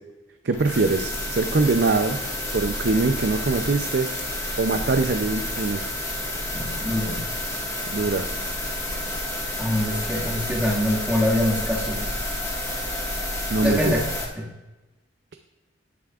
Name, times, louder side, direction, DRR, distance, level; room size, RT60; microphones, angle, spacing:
voice 1, 0.4-2.2 2.5-5.8 7.9-8.3 13.5-13.9, right 3 dB, 60° right, 6 dB, 0.6 m, -23 dB
sound 1, 0.5-14.2, left 1 dB, 15° left, 1.7 m, -30 dB
voice 2, 6.5-7.2 9.6-12.2 13.6-14.0 14.4-14.5, left 1 dB, 5° right, -4 dB, 2.0 m, -24 dB
18.5 x 7.0 x 2.5 m, 1.1 s
head